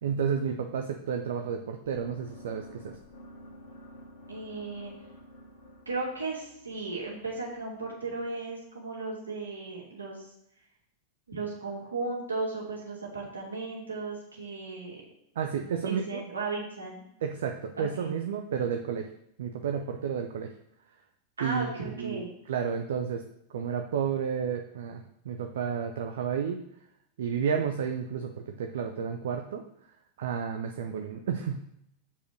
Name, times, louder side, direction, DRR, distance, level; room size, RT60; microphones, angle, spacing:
voice 1, 0.0-3.0 15.4-16.2 17.2-19.1 19.4-20.5 21.4-23.2 23.5-26.6 27.2-29.6 30.2-31.6, right 7 dB, 60° right, 4 dB, 0.7 m, -31 dB
sound 1, 1.8-7.9, equal, 60° left, 2.3 m, -51 dB
voice 2, 4.3-4.9 5.9-10.3 11.3-15.0 15.6-17.0 17.8-18.1 21.4-22.3, right 3 dB, 75° right, -2 dB, 2.6 m, -35 dB
7.0 x 5.1 x 6.3 m, 0.77 s
figure-of-eight pair, 90°, 0 cm